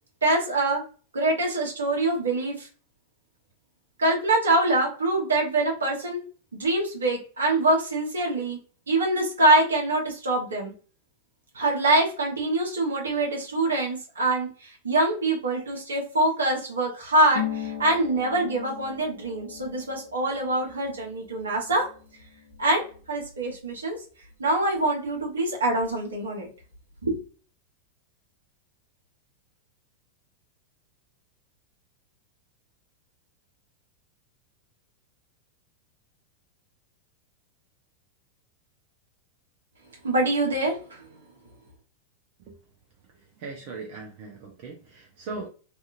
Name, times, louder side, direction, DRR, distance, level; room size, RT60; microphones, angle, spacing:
voice 1, 0.2-0.8 1.1-2.7 4.0-6.2 6.5-8.6 8.9-10.7 11.5-21.9 22.6-22.8 23.1-24.0 24.4-26.5 27.0-27.1 40.0-41.1, right 2 dB, 70° right, 0 dB, 0.9 m, -24 dB
Harp, 17.3-24.8 25.1-26.2 26.4-27.1, left 9 dB, 65° left, 0.6 m, -39 dB
voice 2, 43.1-45.5, right 3 dB, 45° right, 0 dB, 0.6 m, -39 dB
2.7 x 2.5 x 2.4 m, 0.38 s
figure-of-eight pair, 90°, 0 cm